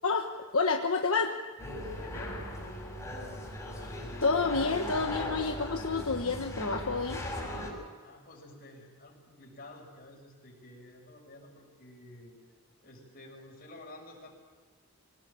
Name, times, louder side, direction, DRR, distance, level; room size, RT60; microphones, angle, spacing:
voice 1, 0.5-1.3 4.2-7.2, left 4 dB, 65° left, 3 dB, 1.3 m, -29 dB
sound 1, 1.6-7.7, left 1 dB, 15° left, 6.4 m, -38 dB
voice 2, 2.0-3.4 8.0-12.3 12.8-14.3, left 1 dB, 40° left, 0 dB, 6.5 m, -50 dB
25.0 x 18.5 x 8.8 m, 1.4 s
head